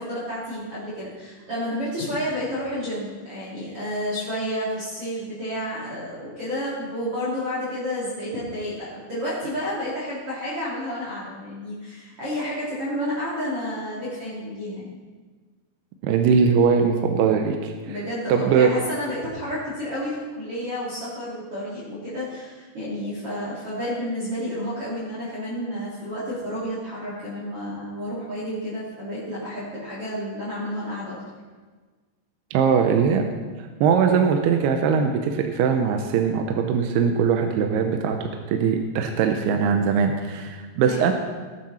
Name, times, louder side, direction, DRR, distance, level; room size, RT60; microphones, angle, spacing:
voice 1, 0.0-14.9 17.9-31.2 40.8-41.1, equal, 35° right, -8 dB, 3.8 m, -30 dB
voice 2, 16.0-17.7 18.3-18.7 32.5-33.3 33.8-41.1, right 6 dB, 75° right, 4 dB, 2.7 m, -21 dB
18.5 x 10.0 x 4.3 m, 1.4 s
omnidirectional pair, 4.9 m